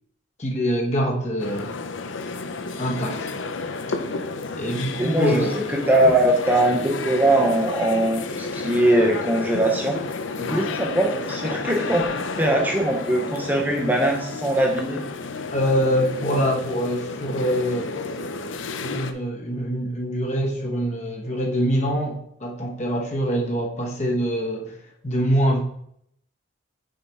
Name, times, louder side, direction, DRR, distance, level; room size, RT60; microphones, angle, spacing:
voice 1, 0.4-1.7 2.8-3.3 4.6-5.6 10.5-10.6 15.5-18.0 18.8-24.8 25.0-25.6, equal, 35° left, 0 dB, 1.1 m, -24 dB
sound 1, 1.4-19.1, left 3 dB, 70° left, 0.5 m, -31 dB
voice 2, 5.0-5.4 5.7-10.0 10.4-12.0 12.3-15.0, right 1 dB, 10° right, 0 dB, 0.7 m, -21 dB
6.5 x 4.1 x 4.6 m, 0.70 s
head